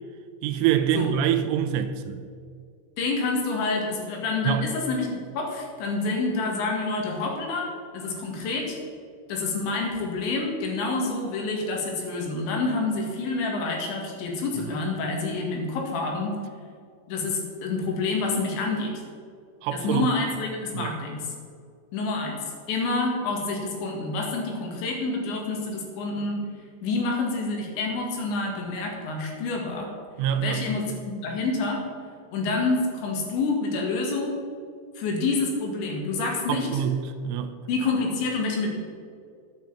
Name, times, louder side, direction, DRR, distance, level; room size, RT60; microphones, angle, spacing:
voice 1, 0.4-2.2 4.4-4.7 19.6-20.1 20.7-20.9 30.2-30.7 36.5-37.5, right 9 dB, 85° right, 8 dB, 3.3 m, -25 dB
voice 2, 3.0-5.1 5.3-7.7 7.9-8.8 9.3-16.4 17.1-18.9 19.7-21.3 21.9-26.4 26.8-29.9 30.4-31.8 32.3-34.4 35.0-36.8 37.7-38.7, left 3 dB, 70° left, 1 dB, 4.2 m, -28 dB
11.0 x 9.1 x 7.4 m, 2.2 s
omnidirectional pair, 5.6 m